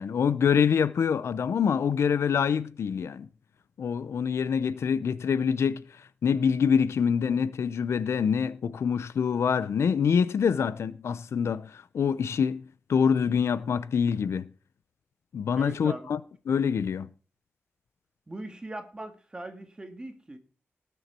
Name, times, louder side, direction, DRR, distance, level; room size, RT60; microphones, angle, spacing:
voice 1, 0.0-3.3 3.8-5.8 6.2-12.6 12.9-14.5 15.3-16.2 16.5-17.1, left 7 dB, 75° left, 0.7 m, -25 dB
voice 2, 15.6-16.1 18.3-20.4, right 2 dB, 20° right, 1.8 m, -40 dB
19.0 x 7.2 x 4.4 m
wide cardioid pair, 165°, 5 cm